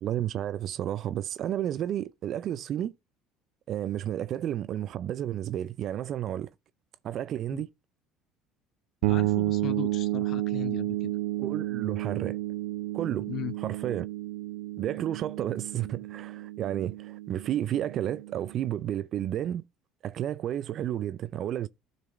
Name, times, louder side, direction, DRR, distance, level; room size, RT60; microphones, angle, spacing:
voice 1, 0.0-2.9 3.7-6.5 7.0-7.7 11.4-12.4 12.9-13.3 13.6-14.1 14.8-19.6 20.0-21.7, right 11 dB, 55° right, 0.4 m, -31 dB
voice 2, 9.0-11.1 13.3-13.5, left 12 dB, 55° left, 0.5 m, -37 dB
sound 1, 9.0-18.6, right 17 dB, 80° right, 0.7 m, -31 dB
12.0 x 4.1 x 4.3 m
supercardioid pair, 90°, 0 cm